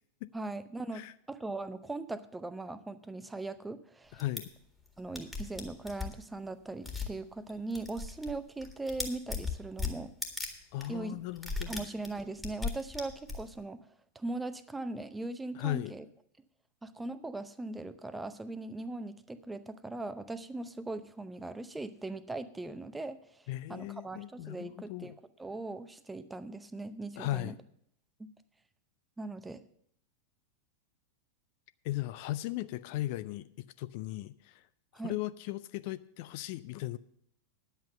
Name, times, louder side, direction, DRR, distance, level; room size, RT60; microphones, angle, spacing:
voice 1, 0.3-4.2 5.0-10.1 10.9-11.2 11.7-13.8 14.1-16.1 16.8-23.4 23.7-27.5 29.2-29.6 34.9-35.1, right 2 dB, 10° right, 0.6 m, -40 dB
voice 2, 4.1-4.5 10.7-11.9 15.5-15.9 23.5-25.2 27.2-27.6 31.8-33.5 33.8-34.7 35.0-37.0, left 16 dB, 45° left, 0.3 m, -37 dB
sound 1, 4.2-4.4 4.9-5.0 5.1-6.2 6.8-7.1 7.5-8.3 8.6-10.5 10.8-10.9 11.4-13.6, left 4 dB, 5° left, 1.8 m, -37 dB
10.5 x 7.9 x 6.6 m
figure-of-eight pair, 90°, 0 cm